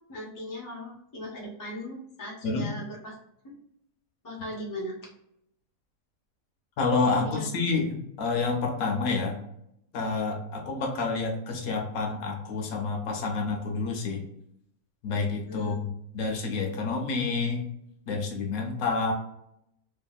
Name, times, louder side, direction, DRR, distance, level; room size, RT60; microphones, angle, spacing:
voice 1, 0.1-3.1 3.4-3.5 4.2-5.1 7.1-7.4 15.5-15.8, equal, 30° left, -3 dB, 0.3 m, -38 dB
voice 2, 6.8-9.4 9.9-14.2 15.0-17.6 18.1-19.1, left 4 dB, 80° left, 2 dB, 1.1 m, -28 dB
2.8 x 2.7 x 2.3 m, 0.77 s
omnidirectional pair, 1.5 m